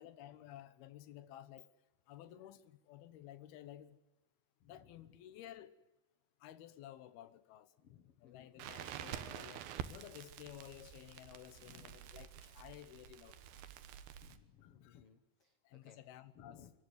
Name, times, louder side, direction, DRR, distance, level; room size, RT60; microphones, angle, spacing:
voice 1, 0.0-1.7 2.1-4.0 4.6-5.7 6.4-7.7 8.2-13.6 14.6-15.0 15.6-16.7, left 12 dB, 85° left, 3.0 m, -54 dB
voice 2, 7.8-8.7 11.6-12.0 14.2-16.0 16.3-16.7, left 8 dB, 65° left, 1.4 m, -61 dB
Crackle, 8.6-14.4, right 10 dB, 85° right, 3.1 m, -48 dB
25.0 x 14.0 x 9.4 m
omnidirectional pair, 4.3 m